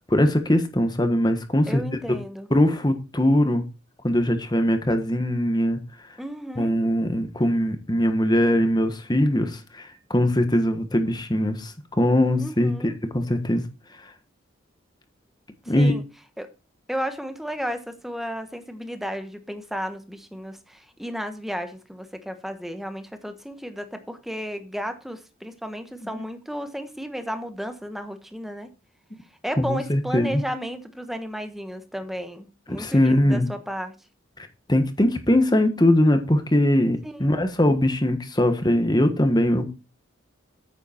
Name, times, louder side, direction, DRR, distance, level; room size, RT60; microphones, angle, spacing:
voice 1, 0.1-1.8 2.5-3.6 4.0-5.8 6.6-13.7 15.7-15.9 26.0-26.2 29.6-30.4 32.8-33.5 34.7-39.7, left 1 dB, 20° left, 1.3 m, -21 dB
voice 2, 1.7-2.5 6.2-6.7 12.4-12.9 15.6-16.0 16.4-16.5 16.9-28.7 29.4-33.9 37.0-37.4, equal, ahead, 1.1 m, -33 dB
9.4 x 8.2 x 4.3 m
head